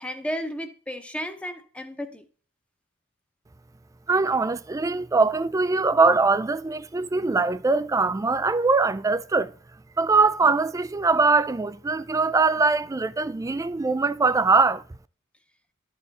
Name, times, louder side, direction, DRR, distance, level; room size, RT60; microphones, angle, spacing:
voice 1, 0.0-2.3, equal, 5° left, 0.8 m, -33 dB
voice 2, 4.1-9.5 10.0-14.8, right 3 dB, 15° right, 0.3 m, -22 dB
11.5 x 4.5 x 4.0 m
head